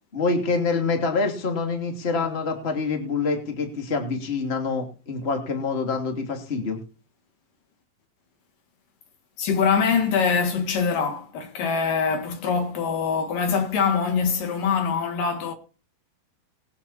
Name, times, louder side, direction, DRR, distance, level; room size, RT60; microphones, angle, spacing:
voice 1, 0.1-6.8, left 4 dB, 20° left, 2.6 m, -26 dB
voice 2, 9.4-15.5, left 6 dB, 70° left, 3.4 m, -23 dB
20.0 x 11.0 x 4.3 m
omnidirectional pair, 4.1 m